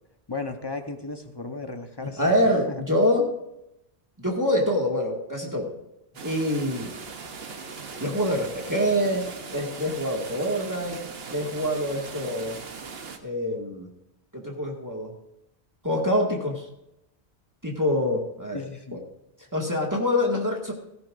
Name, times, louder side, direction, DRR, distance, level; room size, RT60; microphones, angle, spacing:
voice 1, 0.3-2.8 18.5-19.0, left 3 dB, 25° left, 6 dB, 1.0 m, -35 dB
voice 2, 2.0-3.3 4.2-5.7 6.2-6.9 8.0-11.0 11.3-12.6 13.2-13.9 14.3-15.1 15.8-16.7 17.6-18.6 18.9-19.0 19.5-20.7, left 1 dB, 15° right, -1 dB, 1.9 m, -25 dB
sound 1, 6.1-13.2, right 5 dB, 70° right, 1.3 m, -39 dB
17.0 x 14.0 x 2.6 m, 0.83 s
omnidirectional pair, 1.1 m